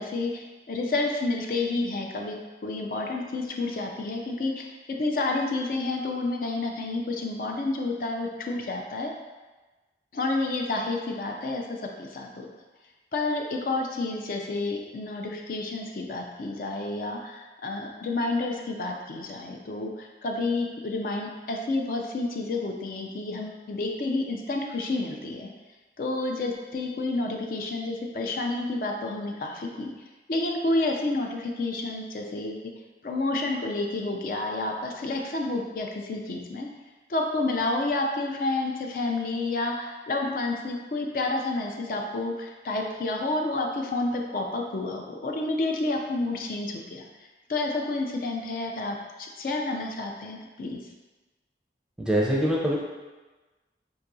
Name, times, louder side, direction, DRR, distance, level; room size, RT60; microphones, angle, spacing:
voice 1, 0.0-2.4 2.6-9.1 10.1-12.5 13.1-25.5 26.0-29.9 30.3-32.7 33.0-36.7 37.1-47.0 47.5-50.8, left 2 dB, 50° left, 1 dB, 0.4 m, -30 dB
voice 2, 52.0-52.8, equal, 5° right, -3 dB, 0.5 m, -23 dB
5.6 x 2.7 x 2.6 m, 1.2 s
head